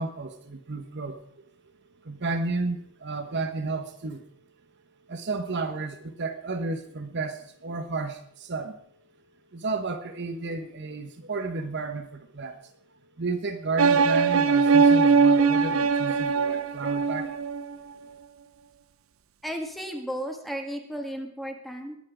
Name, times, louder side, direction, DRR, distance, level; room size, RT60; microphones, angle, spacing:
voice 1, 0.0-1.4 2.0-4.3 5.1-8.8 9.5-12.7 13.2-17.4, right 3 dB, 60° right, 7 dB, 1.1 m, -32 dB
sound 1, 13.8-17.7, right 5 dB, 85° right, 0.7 m, -21 dB
voice 2, 19.4-22.0, equal, ahead, 3 dB, 1.7 m, -34 dB
20.0 x 8.4 x 5.0 m, 0.68 s
head